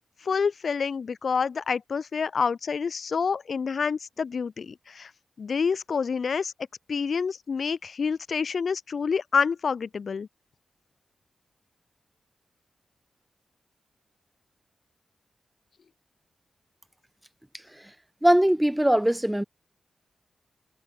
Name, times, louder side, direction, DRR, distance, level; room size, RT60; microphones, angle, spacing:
voice 1, 0.2-5.1 5.4-6.5 6.9-10.3, left 5 dB, 65° left, 0.4 m, -27 dB
voice 2, 18.2-19.4, right 1 dB, 10° right, 2.3 m, -21 dB
cardioid pair, 45°, 0 cm